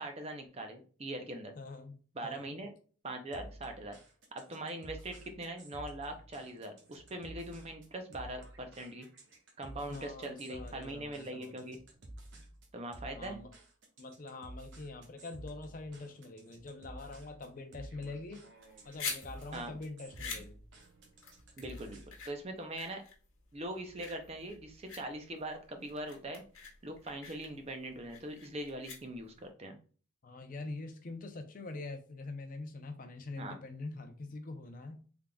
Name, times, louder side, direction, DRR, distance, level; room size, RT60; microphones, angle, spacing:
voice 1, 0.0-1.5 2.1-2.7 3.0-4.0 4.3-9.1 9.6-11.8 12.7-13.4 19.5-19.8 21.6-23.0 23.5-26.4 26.8-29.8 33.4-33.6, right 1 dB, 30° right, 5 dB, 0.5 m, -42 dB
voice 2, 1.6-2.5 9.9-11.7 13.1-13.5 14.0-18.4 18.8-20.6 30.2-35.0, left 3 dB, 40° left, 7 dB, 0.5 m, -44 dB
sound 1, 3.3-22.4, right 1 dB, 60° right, 0.9 m, -52 dB
sound 2, 18.6-29.5, left 5 dB, 80° left, 1.1 m, -46 dB
3.7 x 3.4 x 2.2 m, 0.40 s
head